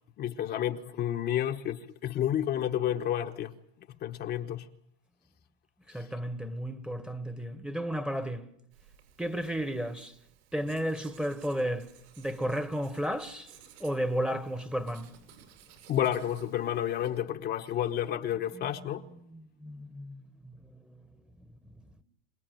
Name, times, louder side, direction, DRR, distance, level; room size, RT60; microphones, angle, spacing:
voice 1, 0.2-3.5 4.0-4.6 15.9-19.0, left 11 dB, 30° left, 1.0 m, -30 dB
voice 2, 5.9-8.5 9.2-10.1 10.5-13.5 13.8-15.1 18.5-18.9 19.2-21.0 21.8-21.9, equal, 5° right, 1.2 m, -33 dB
Writing, 8.7-17.1, right 9 dB, 80° right, 7.9 m, -58 dB
26.5 x 18.0 x 9.2 m
supercardioid pair, 145°, 32 cm